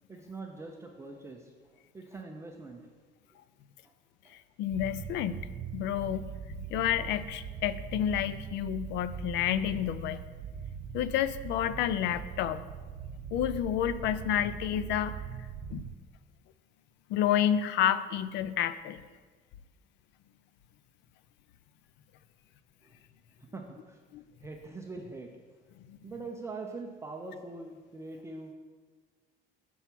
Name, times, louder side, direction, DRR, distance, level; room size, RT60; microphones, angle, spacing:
voice 1, 0.1-1.5 1.9-2.8 3.8-3.9 4.2-4.3 22.8-22.9 23.4-24.0 24.4-25.3 26.0-28.5, right 3 dB, 15° right, 1 dB, 0.5 m, -43 dB
voice 2, 4.6-5.4 5.7-10.2 10.9-12.6 13.3-15.2 15.7-15.8 17.1-19.0 24.1-24.2 25.9-26.0, left 10 dB, 70° left, 14 dB, 0.4 m, -30 dB
sound 1, 4.7-16.0, right 8 dB, 70° right, 0.4 m, -41 dB
6.9 x 4.5 x 6.0 m, 1.4 s
cardioid pair, 155°, 19 cm